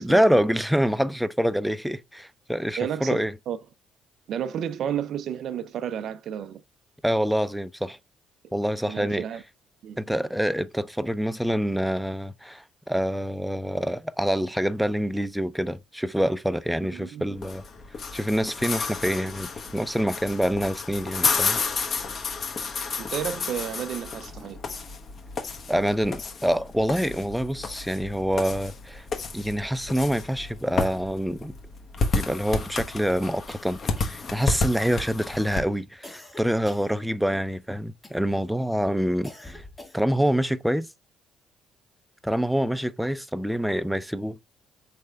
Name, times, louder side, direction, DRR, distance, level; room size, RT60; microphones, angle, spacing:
voice 1, 0.0-3.3 7.0-8.0 8.5-9.3 10.0-17.6 18.1-21.6 25.7-29.1 29.3-31.5 32.1-39.6 39.9-40.9 42.2-44.4, equal, ahead, 0.4 m, -26 dB
voice 2, 2.8-3.6 4.3-6.6 8.9-9.4 9.8-10.0 16.9-17.3 23.0-24.6 25.7-25.9, right 9 dB, 65° right, 0.4 m, -32 dB
sound 1, 17.4-35.6, left 4 dB, 50° left, 1.1 m, -31 dB
sound 2, 33.5-34.4 34.7-35.2 36.0-37.5 38.0-38.5 39.2-40.2, left 2 dB, 15° left, 1.6 m, -47 dB
4.2 x 3.2 x 3.4 m
hypercardioid pair, 55°, 0 cm